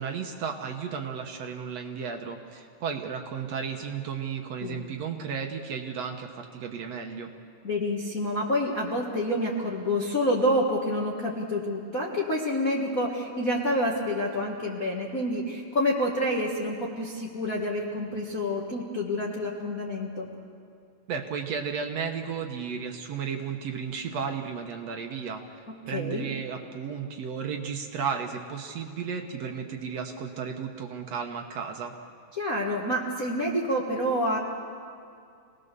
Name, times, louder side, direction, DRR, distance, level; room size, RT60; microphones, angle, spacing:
voice 1, 0.0-7.3 21.1-31.9, right 6 dB, 60° right, 3 dB, 2.0 m, -34 dB
voice 2, 7.6-20.3 25.9-26.3 32.3-34.4, left 1 dB, 35° left, -4 dB, 1.6 m, -28 dB
27.0 x 19.0 x 6.8 m, 2.4 s
omnidirectional pair, 3.8 m